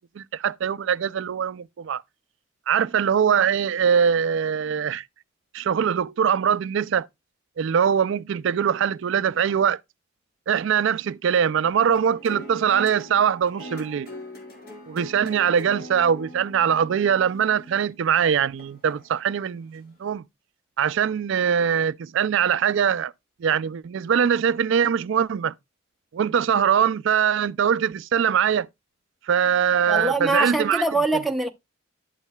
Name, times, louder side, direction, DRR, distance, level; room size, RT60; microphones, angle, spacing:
voice 1, 0.2-2.0 2.7-5.0 5.5-7.1 7.6-9.8 10.5-14.1 14.9-20.2 20.8-23.1 23.4-25.5 26.1-28.7 29.3-30.8, right 7 dB, 65° right, 0.4 m, -22 dB
sound 1, 11.7-19.2 19.7-19.8, left 1 dB, 50° left, 3.8 m, -42 dB
voice 2, 29.9-31.5, right 2 dB, ahead, 0.8 m, -23 dB
11.5 x 7.2 x 2.2 m
head